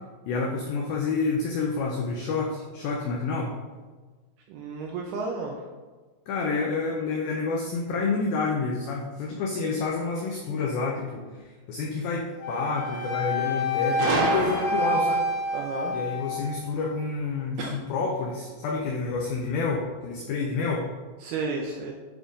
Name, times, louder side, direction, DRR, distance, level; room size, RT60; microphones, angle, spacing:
voice 1, 0.3-3.6 6.3-15.3 15.9-20.9, left 4 dB, 85° left, 0 dB, 2.1 m, -29 dB
voice 2, 4.5-5.6 15.5-16.0 17.6-17.8 21.2-21.9, right 4 dB, 85° right, 1 dB, 2.3 m, -32 dB
Wind instrument woodwind instrument, 12.4-16.7, left 1 dB, 50° left, 1.0 m, -28 dB
Gunshot gunfire, 14.0-15.2, right 3 dB, 70° right, 2.2 m, -27 dB
11.0 x 3.7 x 3.6 m, 1.4 s
omnidirectional pair, 5.1 m